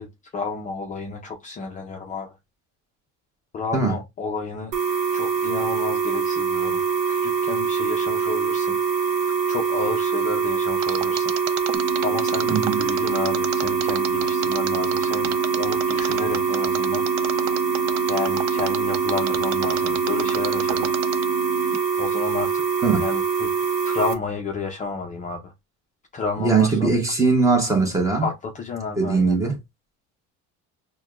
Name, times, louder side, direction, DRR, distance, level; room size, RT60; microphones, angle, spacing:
voice 1, 0.0-2.4 3.5-4.7 5.1-6.8 7.1-8.8 9.1-9.2 9.5-11.3 12.0-12.5 12.8-17.0 18.1-20.9 22.0-22.7 23.0-25.5 26.1-26.9 28.2-29.4, left 4 dB, 25° left, 0.5 m, -31 dB
sound 1, 4.7-24.1, right 6 dB, 80° right, 1.0 m, -24 dB
Mechanisms, 10.8-21.4 21.7-21.8, right 12 dB, 65° right, 0.5 m, -31 dB
sound 2, 11.7-21.7, right 2 dB, 45° right, 1.2 m, -34 dB
voice 2, 12.5-12.8 22.8-23.1 26.4-28.3 29.0-29.6, right 4 dB, 10° right, 0.8 m, -20 dB
6.3 x 2.2 x 2.4 m
cardioid pair, 170°, 32 cm